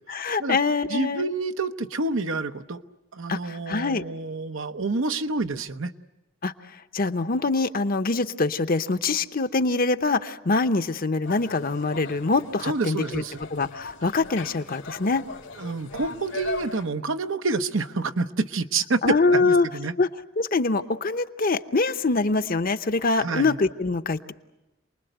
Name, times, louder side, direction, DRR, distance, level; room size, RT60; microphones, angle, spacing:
voice 1, 0.1-1.3 3.3-4.0 6.4-6.5 6.9-13.2 13.5-15.2 19.0-19.7 20.0-20.1 20.4-24.3, left 3 dB, 45° left, 10 dB, 0.8 m, -24 dB
voice 2, 0.9-2.8 3.1-5.9 12.6-13.4 15.6-19.9 23.2-23.6, right 3 dB, 80° right, 9 dB, 0.9 m, -28 dB
sound 1, 11.2-16.8, left 3 dB, 90° left, 2.5 m, -38 dB
28.0 x 20.5 x 7.9 m, 1.0 s
head